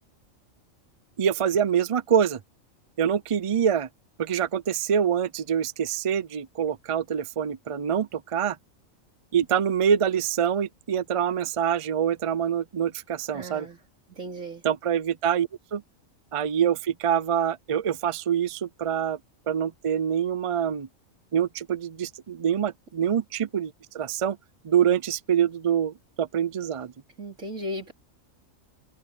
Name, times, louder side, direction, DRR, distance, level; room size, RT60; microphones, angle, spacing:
voice 1, 1.2-2.4 3.0-3.9 4.2-8.6 9.3-13.7 14.6-15.8 16.3-19.2 19.5-20.9 21.3-24.4 24.6-26.9, right 8 dB, 50° right, 0.4 m, -25 dB
voice 2, 13.3-13.8 14.1-14.6 27.2-27.9, equal, 70° right, 4.5 m, -36 dB
omnidirectional pair, 1.4 m